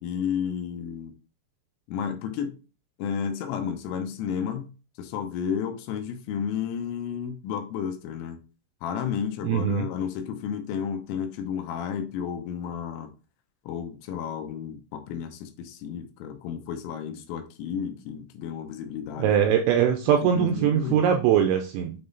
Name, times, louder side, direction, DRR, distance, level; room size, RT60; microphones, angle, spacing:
voice 1, 0.0-1.1 1.9-2.5 3.0-4.7 5.0-8.4 8.8-13.1 13.7-19.3 20.3-21.1, left 8 dB, 80° left, 3.3 m, -32 dB
voice 2, 9.4-9.9 19.2-21.9, right 9 dB, 80° right, 2.7 m, -22 dB
8.9 x 3.6 x 4.0 m
omnidirectional pair, 6.0 m